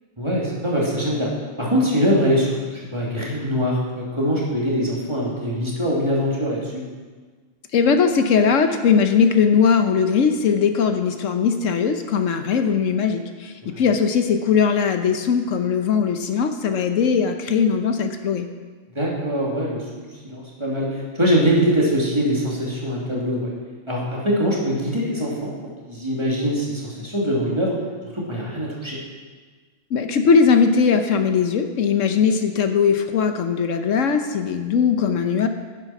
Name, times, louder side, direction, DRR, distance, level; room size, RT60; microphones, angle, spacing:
voice 1, 0.2-1.3 1.6-6.8 13.6-13.8 18.9-23.5 23.9-25.5 25.9-27.8 28.1-29.0, equal, 20° right, -4 dB, 2.7 m, -23 dB
voice 2, 7.7-18.5 29.9-35.5, left 6 dB, 75° left, 7 dB, 1.2 m, -19 dB
10.5 x 10.0 x 5.9 m, 1.5 s
omnidirectional pair, 1.3 m